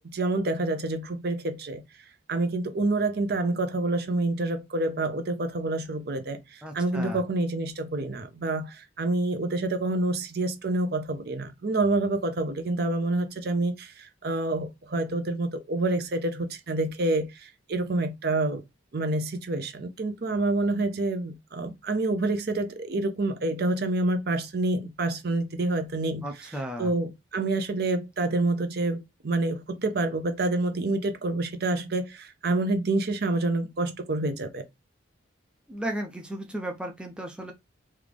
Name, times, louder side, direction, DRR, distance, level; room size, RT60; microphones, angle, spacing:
voice 1, 0.0-1.8 2.3-18.6 18.9-26.3 26.8-34.7, right 2 dB, 55° right, 0.6 m, -27 dB
voice 2, 6.6-7.2 26.2-26.9 35.7-37.5, right 1 dB, 5° right, 0.4 m, -34 dB
3.2 x 2.4 x 3.3 m
head